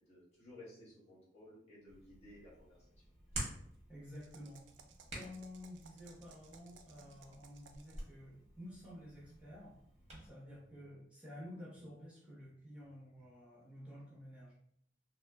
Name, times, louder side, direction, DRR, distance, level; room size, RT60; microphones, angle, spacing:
voice 1, 0.1-2.8, left 1 dB, 35° left, -6 dB, 0.7 m, -56 dB
Hands, 1.9-10.3, right 1 dB, 35° right, 0.8 m, -50 dB
voice 2, 3.9-4.6 5.1-9.8 10.2-14.5, left 1 dB, 5° right, -6 dB, 0.8 m, -52 dB
sound 1, 4.1-8.1, right 6 dB, 75° right, 0.3 m, -62 dB
2.8 x 2.4 x 2.2 m, 0.69 s
head